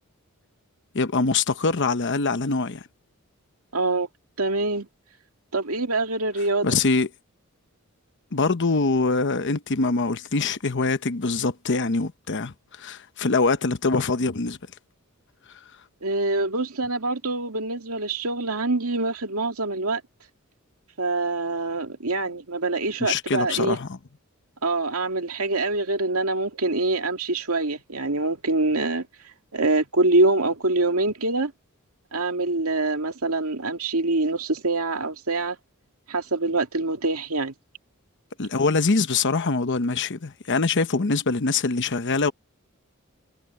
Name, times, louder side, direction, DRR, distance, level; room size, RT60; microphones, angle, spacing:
voice 1, 0.9-2.8 6.6-7.1 8.3-14.6 23.0-24.0 38.4-42.3, left 3 dB, 55° left, 0.9 m, -24 dB
voice 2, 3.7-4.1 4.4-4.9 5.5-6.7 16.0-20.0 21.0-23.8 24.6-29.1 29.5-31.5 32.1-35.6 36.1-37.5, right 2 dB, 80° right, 2.3 m, -25 dB
head